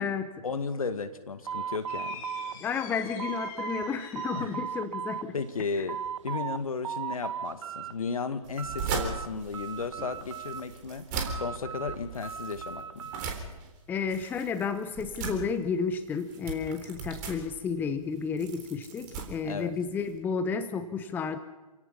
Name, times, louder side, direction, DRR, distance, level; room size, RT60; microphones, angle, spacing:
voice 1, 0.4-2.2 4.4-4.5 5.3-11.0 11.3-13.0 19.4-19.7, left 4 dB, 65° left, 9 dB, 1.9 m, -34 dB
sound 1, 1.4-5.2 5.6-6.6 6.8-7.9 8.3-9.3 9.5-10.8 11.3-13.3, right 7 dB, 50° right, 1.3 m, -37 dB
sound 2, 1.9-4.8, left 7 dB, 25° left, 3.0 m, -45 dB
voice 2, 2.6-5.3 5.7-5.8 13.9-21.4, left 5 dB, 10° left, 11 dB, 0.8 m, -32 dB
sound 3, 8.4-20.2, right 5 dB, 30° right, 3.8 m, -39 dB
28.5 x 17.0 x 5.6 m, 1.2 s
figure-of-eight pair, 125°, 20 cm